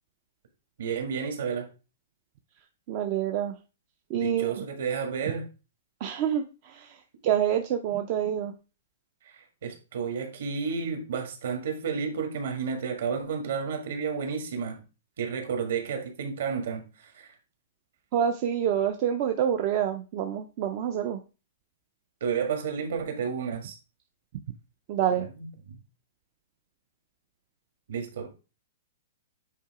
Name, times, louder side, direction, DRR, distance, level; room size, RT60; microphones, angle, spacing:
voice 1, 0.8-1.7 4.1-5.5 9.2-14.8 15.2-17.3 22.2-23.8 25.1-25.5 27.9-28.3, right 6 dB, 55° right, 1.8 m, -31 dB
voice 2, 2.9-3.5 4.1-4.6 6.0-8.5 18.1-21.2 24.9-25.3, right 9 dB, 25° right, 0.4 m, -27 dB
8.4 x 2.9 x 4.8 m
hypercardioid pair, 180°, 0 cm